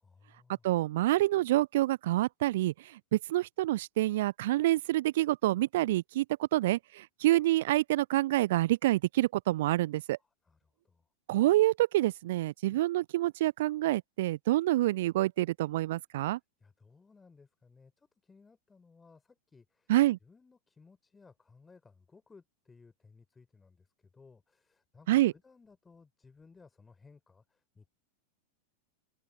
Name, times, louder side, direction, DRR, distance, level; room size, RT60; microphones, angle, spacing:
voice 1, 0.0-0.7 10.2-10.6 10.8-11.1 16.6-19.9 20.2-27.9, left 4 dB, 15° left, 5.1 m, -60 dB
voice 2, 0.6-2.7 3.1-10.2 11.3-16.4 19.9-20.2 25.1-25.3, right 16 dB, 55° right, 0.6 m, -27 dB
open air
figure-of-eight pair, 90°, 0 cm